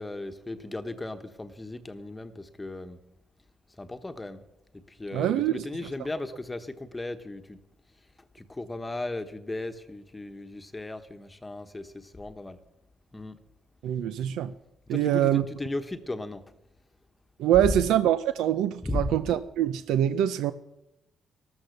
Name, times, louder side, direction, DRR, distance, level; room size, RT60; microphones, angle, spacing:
voice 1, 0.0-3.0 3.8-4.4 5.0-7.6 8.3-12.6 13.1-13.4 14.9-16.4 18.8-19.0, left 2 dB, 15° left, 9 dB, 1.1 m, -36 dB
voice 2, 5.1-5.6 13.8-14.5 14.9-15.4 17.4-20.5, right 11 dB, 90° right, 12 dB, 0.6 m, -24 dB
13.5 x 13.0 x 6.5 m, 0.86 s
cardioid pair, 90°, 0 cm